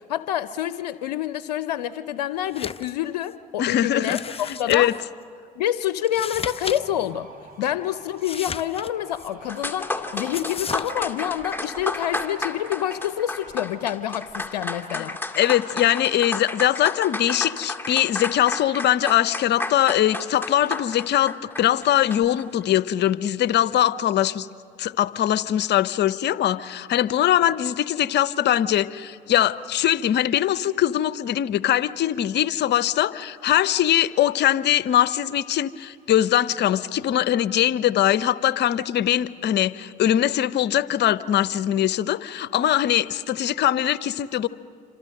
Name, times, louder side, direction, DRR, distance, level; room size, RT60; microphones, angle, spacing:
voice 1, 0.1-4.9 5.6-7.3 7.6-15.2, left 12 dB, 90° left, 13 dB, 0.5 m, -27 dB
sound 1, 2.5-2.9 3.2-3.3 4.0-5.1 6.0-6.8 7.1-7.2 8.2-9.3 10.3-10.9, left 6 dB, 30° left, 0.8 m, -34 dB
voice 2, 3.6-4.2 4.7-4.9 14.9-15.0 15.4-24.5 24.8-44.5, left 12 dB, 55° left, 16 dB, 0.8 m, -22 dB
sound 2, 6.1-14.6, right 3 dB, 45° right, 5.6 m, -48 dB
sound 3, 9.2-9.3 9.5-22.5, left 2 dB, 10° left, 2.1 m, -32 dB
27.5 x 26.0 x 6.6 m, 2.3 s
hypercardioid pair, 60°, 21 cm